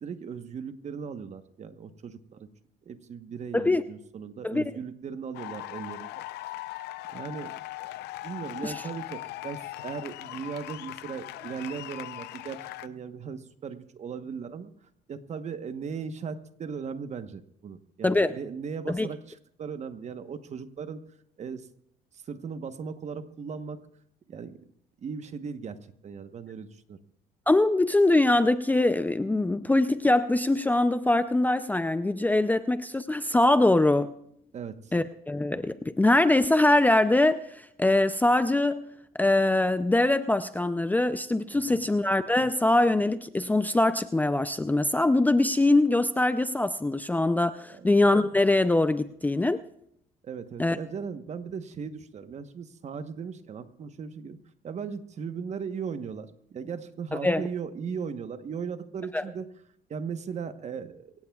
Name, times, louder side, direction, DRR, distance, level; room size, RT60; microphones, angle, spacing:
voice 1, 0.0-2.5 2.9-6.2 7.1-7.5 8.2-14.7 15.1-21.0 21.4-21.7 22.3-23.8 24.3-24.6 25.0-25.8 26.0-27.0 34.5-35.0 41.5-41.9 47.7-47.9 50.2-54.4 54.6-59.5 59.9-61.1, right 6 dB, 40° right, 10 dB, 1.1 m, -37 dB
sound 1, 5.3-12.9, left 16 dB, 80° left, 0.6 m, -40 dB
voice 2, 18.0-18.3 18.9-19.1 27.5-34.1 34.9-38.9 39.2-49.6 50.6-50.8 57.1-57.4 59.1-59.2, left 2 dB, 10° left, 11 dB, 0.5 m, -23 dB
24.5 x 17.0 x 2.4 m, 0.71 s
cardioid pair, 110°, 17 cm